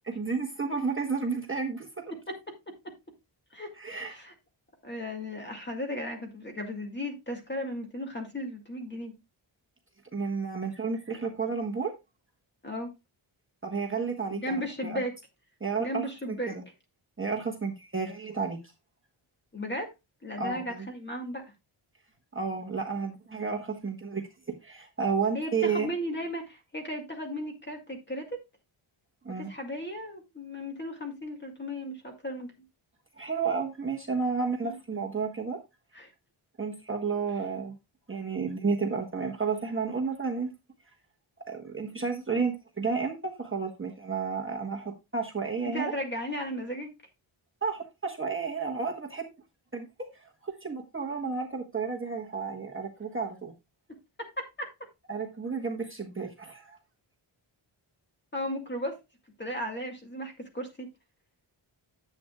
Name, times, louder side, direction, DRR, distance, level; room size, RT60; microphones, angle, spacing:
voice 1, 0.2-1.9 3.8-4.1 10.1-11.9 13.6-15.0 15.6-16.6 17.2-18.6 20.4-20.9 22.3-24.3 24.6-25.9 29.2-29.5 33.2-35.6 36.6-37.8 38.1-40.5 41.5-45.9 47.6-49.3 49.7-49.9 50.1-53.5 55.1-56.8, right 5 dB, 25° right, 1.2 m, -32 dB
voice 2, 2.1-2.9 3.5-4.3 4.8-9.1 12.6-12.9 14.3-15.1 15.8-16.6 19.5-19.9 20.2-21.4 25.3-28.4 29.4-32.5 34.6-34.7 35.9-36.1 45.6-46.9 54.2-54.7 58.3-59.0 59.4-60.9, equal, 20° left, 2.1 m, -35 dB
10.5 x 8.0 x 2.3 m
wide cardioid pair, 155°, 50 cm